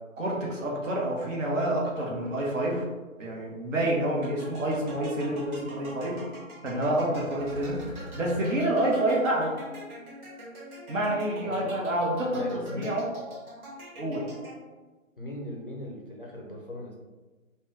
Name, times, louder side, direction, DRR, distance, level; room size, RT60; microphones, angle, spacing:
voice 1, 0.2-2.9 3.2-6.3 6.6-7.9 8.1-9.6 10.9-13.1 14.0-14.2, right 1 dB, 60° right, -2 dB, 1.0 m, -28 dB
sound 1, 3.9-4.0 4.3-4.6 4.9-5.0 7.3-8.4, right 1 dB, 5° right, 0.9 m, -43 dB
sound 2, 4.2-14.9, equal, 85° right, 1.3 m, -44 dB
voice 2, 12.0-13.0 15.2-17.0, left 1 dB, 45° left, -3 dB, 0.4 m, -39 dB
3.2 x 2.2 x 3.1 m, 1.2 s
hypercardioid pair, 180°, 42 cm